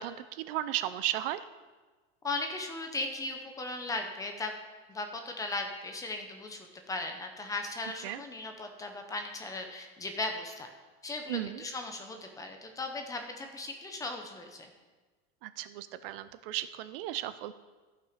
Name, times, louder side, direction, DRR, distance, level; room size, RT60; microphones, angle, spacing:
voice 1, 0.0-1.4 8.0-8.2 11.3-11.6 15.4-17.5, right 13 dB, 65° right, 14 dB, 0.6 m, -35 dB
voice 2, 2.2-4.5 4.9-10.7 11.0-14.7, left 2 dB, 10° left, 4 dB, 0.7 m, -37 dB
13.5 x 6.0 x 5.0 m, 1.3 s
supercardioid pair, 170°, 31 cm